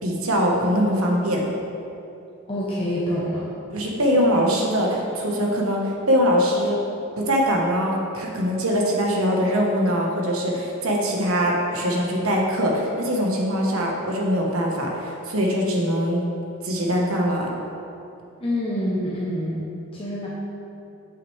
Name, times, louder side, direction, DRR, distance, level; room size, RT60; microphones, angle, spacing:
voice 1, 0.0-1.4 3.7-6.8 7.2-16.2 16.6-17.5, equal, 80° right, -1 dB, 1.2 m, -22 dB
voice 2, 2.5-3.5 18.4-20.3, equal, 25° left, -6 dB, 0.8 m, -26 dB
8.4 x 6.3 x 3.3 m, 2.7 s
head